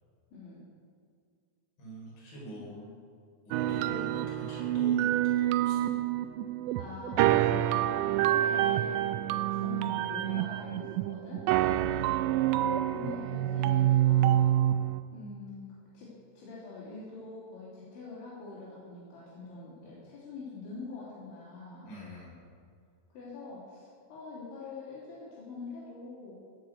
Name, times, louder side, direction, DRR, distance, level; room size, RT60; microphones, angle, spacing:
voice 1, 0.3-0.7 2.5-3.0 6.8-11.5 12.9-14.6 15.1-15.7 15.9-21.9 23.1-26.4, left 3 dB, 80° left, -8 dB, 5.3 m, -44 dB
voice 2, 1.8-2.8 3.4-5.9 11.7-12.3 21.8-22.4, right 1 dB, 55° left, -5 dB, 6.2 m, -45 dB
sound 1, 3.5-15.0, right 13 dB, 85° right, 2.6 m, -27 dB
17.0 x 6.0 x 8.0 m, 2.3 s
omnidirectional pair, 5.2 m